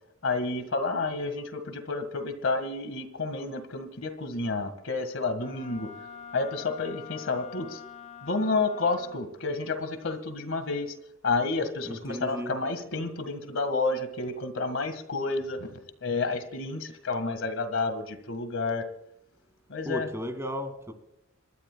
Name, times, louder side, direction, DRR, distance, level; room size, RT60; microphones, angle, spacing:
voice 1, 0.2-5.9 6.3-7.8 8.2-10.9 11.2-15.7 16.0-18.9 19.7-20.1, left 3 dB, 65° left, 1.8 m, -30 dB
Wind instrument woodwind instrument, 5.3-9.4, left 8 dB, 35° left, 1.1 m, -45 dB
voice 2, 11.8-12.5 19.8-20.9, equal, 15° right, 2.3 m, -34 dB
28.0 x 13.0 x 2.3 m
head